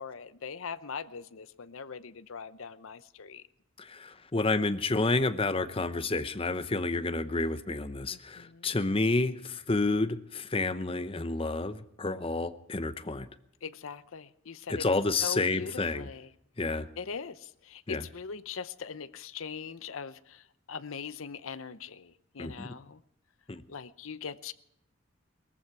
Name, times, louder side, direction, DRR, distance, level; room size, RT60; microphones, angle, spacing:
voice 1, 0.0-3.4 8.1-8.8 13.6-14.9 15.2-16.3 17.0-23.0 23.7-24.5, left 6 dB, 75° left, 0.7 m, -41 dB
voice 2, 3.8-13.3 14.7-16.1 16.6-16.9 17.9-18.0 22.4-22.7 23.5-23.6, left 3 dB, 25° left, 0.8 m, -30 dB
19.5 x 14.5 x 4.7 m
head